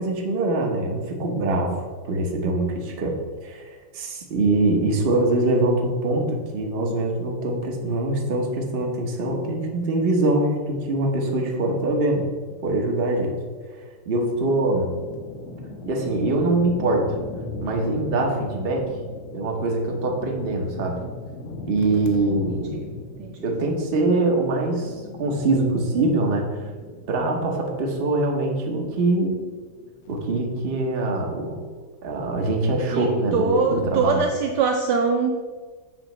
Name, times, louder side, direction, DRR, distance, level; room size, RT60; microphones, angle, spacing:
voice 1, 0.0-1.8 2.0-3.1 3.4-12.2 12.6-13.3 14.1-14.9 15.9-17.1 17.6-18.9 19.3-21.0 21.7-22.9 23.4-26.5 27.1-29.4 30.1-31.6 32.0-34.2, right 2 dB, 50° right, 0 dB, 0.7 m, -23 dB
sound 1, 14.3-30.8, left 2 dB, 80° left, 1.7 m, -39 dB
voice 2, 32.9-35.6, right 4 dB, 85° right, 3 dB, 0.9 m, -23 dB
7.3 x 3.0 x 5.9 m, 1.5 s
omnidirectional pair, 2.4 m